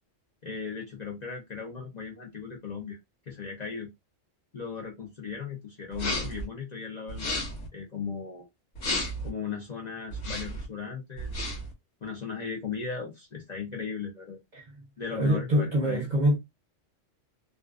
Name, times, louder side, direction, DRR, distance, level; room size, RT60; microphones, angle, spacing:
voice 1, 0.4-3.0 3.3-3.9 4.5-7.4 7.7-8.5 9.2-11.4 12.0-14.4 15.0-16.0, left 6 dB, 45° left, 0.6 m, -37 dB
sound 1, 5.9-6.4 7.1-7.7 8.7-9.3 10.1-10.6 11.2-11.7, left 1 dB, 75° left, 1.2 m, -32 dB
voice 2, 15.1-16.4, equal, 45° right, 0.7 m, -25 dB
2.4 x 2.4 x 2.3 m
omnidirectional pair, 1.3 m